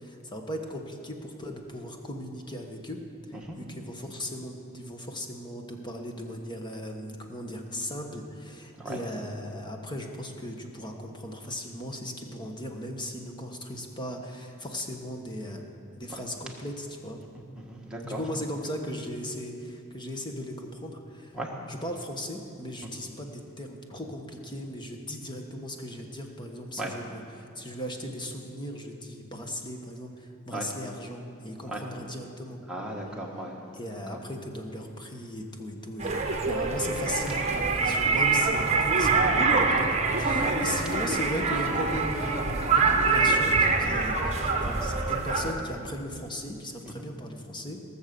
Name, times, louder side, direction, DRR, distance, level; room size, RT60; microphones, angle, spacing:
voice 1, 0.0-15.6 16.0-17.2 18.0-21.4 21.7-32.6 33.3-33.5 33.7-47.8, equal, 20° left, 3 dB, 1.2 m, -37 dB
voice 2, 17.6-18.2 21.3-21.5 26.8-26.9 30.5-30.7 31.7-31.8 32.7-33.6, right 1 dB, 5° right, -3 dB, 1.5 m, -36 dB
sound 1, 36.0-45.5, right 4 dB, 30° right, 1.1 m, -25 dB
18.0 x 7.2 x 6.8 m, 2.4 s
head